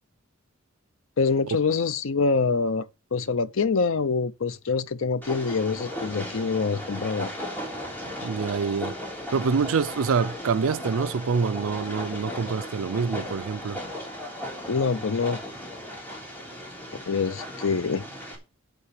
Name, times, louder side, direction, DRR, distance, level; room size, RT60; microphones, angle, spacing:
voice 1, 1.2-2.9 3.1-7.3 14.7-15.4 17.1-18.0, left 4 dB, 75° left, 0.7 m, -25 dB
Train, 5.2-18.4, equal, 10° left, 3.4 m, -36 dB
voice 2, 8.2-9.0 9.3-13.8, right 5 dB, 80° right, 0.5 m, -26 dB
8.6 x 8.4 x 4.9 m
head